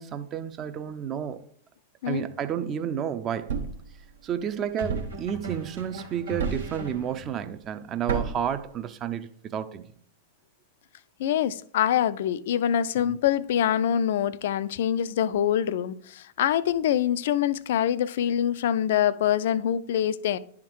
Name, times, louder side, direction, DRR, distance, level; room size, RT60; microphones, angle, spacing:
voice 1, 0.0-1.4 2.1-3.5 4.2-9.8 13.0-13.2, right 9 dB, 30° right, 0.6 m, -31 dB
sound 1, 2.1-2.4 4.8-7.4, right 1 dB, 85° right, 1.7 m, -40 dB
Thump thud, 3.5-3.9 4.9-5.3 6.4-6.8 8.1-8.5, right 5 dB, 65° right, 0.9 m, -29 dB
voice 2, 11.2-20.4, left 10 dB, 60° left, 0.4 m, -25 dB
11.0 x 3.6 x 4.6 m
figure-of-eight pair, 95°, 0 cm